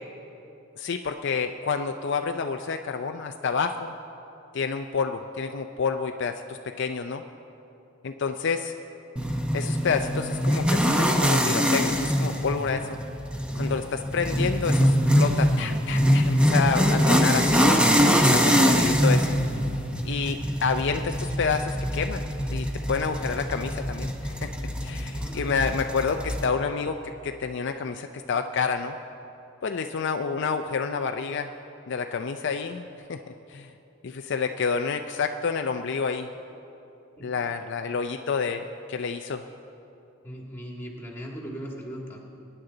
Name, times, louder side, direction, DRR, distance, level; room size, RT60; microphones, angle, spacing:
voice 1, 0.8-3.9 4.5-7.2 8.0-8.7 9.5-13.0 13.5-17.8 18.3-19.4 20.0-24.5 24.8-27.0 27.2-29.0 29.6-31.5 31.9-33.2 33.5-33.7 34.0-36.3 37.2-39.4, left 5 dB, 55° left, 6 dB, 0.4 m, -29 dB
sound 1, 9.2-26.5, equal, 5° right, 0.7 m, -23 dB
voice 2, 17.1-17.4 25.1-25.6 37.2-37.4 40.2-42.2, equal, 10° left, -1 dB, 1.8 m, -38 dB
22.5 x 10.0 x 3.9 m, 2.9 s
head